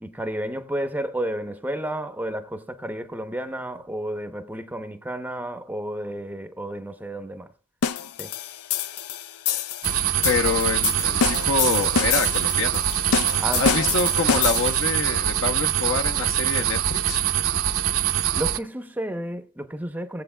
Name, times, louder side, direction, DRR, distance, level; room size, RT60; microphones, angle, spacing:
voice 1, 0.0-7.5 8.2-8.3 13.4-14.0 18.4-20.2, right 1 dB, 10° right, 0.6 m, -31 dB
sound 1, 7.8-14.9, left 8 dB, 80° left, 0.4 m, -27 dB
sound 2, 9.8-18.6, right 10 dB, 70° right, 0.7 m, -24 dB
voice 2, 10.2-13.3 13.6-17.2, left 4 dB, 65° left, 0.9 m, -27 dB
18.5 x 7.7 x 2.2 m
head